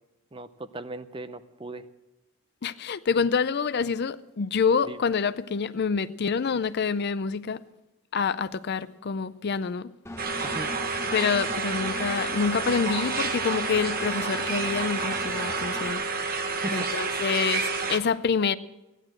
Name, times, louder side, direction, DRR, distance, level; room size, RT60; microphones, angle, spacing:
voice 1, 0.3-1.9 4.8-5.0 10.4-10.8 16.6-17.3, right 2 dB, 25° right, 0.6 m, -38 dB
voice 2, 2.6-7.6 8.1-9.9 11.1-16.0 16.7-18.5, left 5 dB, 45° left, 0.4 m, -27 dB
Engine, 10.1-15.9, left 1 dB, 10° left, 0.8 m, -40 dB
sound 1, 10.2-18.0, right 4 dB, 40° right, 1.1 m, -29 dB
15.5 x 11.0 x 7.7 m
head